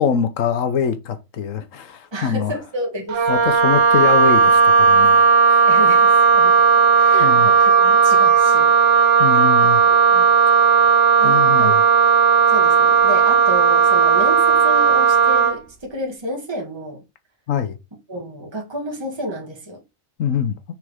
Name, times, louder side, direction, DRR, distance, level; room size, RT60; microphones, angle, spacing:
voice 1, 0.0-2.5 3.3-5.7 7.2-7.5 9.2-9.8 11.2-11.8 17.5-17.8 20.2-20.6, left 7 dB, 70° left, 1.3 m, -23 dB
voice 2, 2.1-3.2 5.7-8.7 9.3-9.5 9.9-10.3 11.2-11.8 12.5-17.0 18.1-19.8, equal, 20° right, 1.9 m, -30 dB
Wind instrument woodwind instrument, 3.1-15.6, right 5 dB, 55° right, 0.9 m, -14 dB
6.3 x 4.5 x 3.5 m
omnidirectional pair, 1.4 m